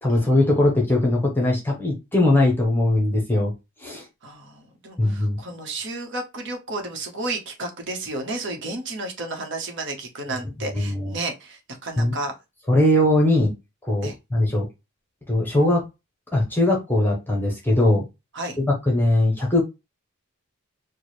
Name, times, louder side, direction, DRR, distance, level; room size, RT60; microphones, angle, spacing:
voice 1, 0.0-3.5 3.8-4.0 5.0-5.4 10.7-11.1 12.0-12.1 12.7-13.5 13.8-14.7 15.3-15.8 16.3-18.0 18.6-19.6, left 1 dB, 10° left, 0.9 m, -20 dB
voice 2, 4.2-12.3 14.0-14.2 18.3-18.6, right 2 dB, 55° right, 1.0 m, -32 dB
4.6 x 2.2 x 3.1 m
head